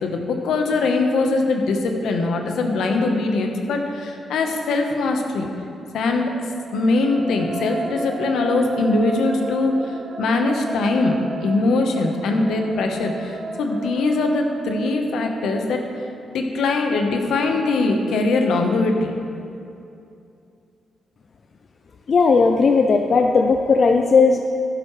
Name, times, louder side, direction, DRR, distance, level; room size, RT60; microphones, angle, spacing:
voice 1, 0.0-5.5 5.9-6.3 6.7-9.7 10.2-11.1 11.4-15.8 16.3-19.1, left 3 dB, 80° left, 3 dB, 1.2 m, -21 dB
sound 1, 6.5-15.6, right 4 dB, 50° right, 0.9 m, -34 dB
voice 2, 22.1-24.4, left 4 dB, 55° left, 4 dB, 0.6 m, -16 dB
12.0 x 11.0 x 3.3 m, 2.6 s
cardioid pair, 70°, 0 cm